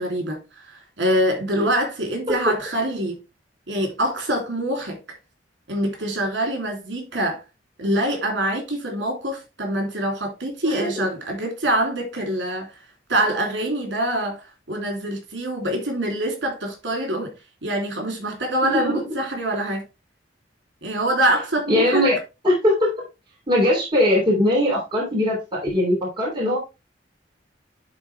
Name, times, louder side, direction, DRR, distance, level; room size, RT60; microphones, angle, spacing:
voice 1, 0.0-3.2 3.7-5.0 5.7-7.4 7.8-12.7 13.1-17.3 17.6-19.8 20.8-22.0, right 1 dB, 75° right, 3.0 m, -25 dB
voice 2, 10.6-11.1 18.6-18.9 21.7-22.2 22.4-22.9 23.5-26.6, left 1 dB, 25° right, 3.1 m, -20 dB
10.5 x 3.9 x 3.3 m
head